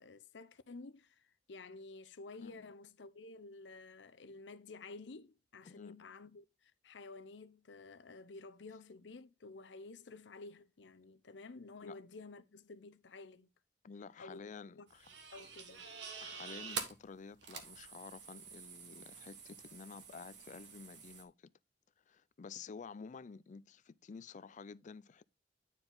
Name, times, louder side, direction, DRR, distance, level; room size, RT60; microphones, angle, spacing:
voice 1, 0.0-13.5 14.2-14.4 14.7-14.9 15.3-15.9, left 3 dB, 85° left, 0.7 m, -52 dB
voice 2, 13.8-15.1 16.2-21.5 22.0-25.2, left 5 dB, 45° left, 0.4 m, -51 dB
sound 1, 14.9-21.2, right 6 dB, 80° right, 1.5 m, -47 dB
9.6 x 4.6 x 3.8 m
head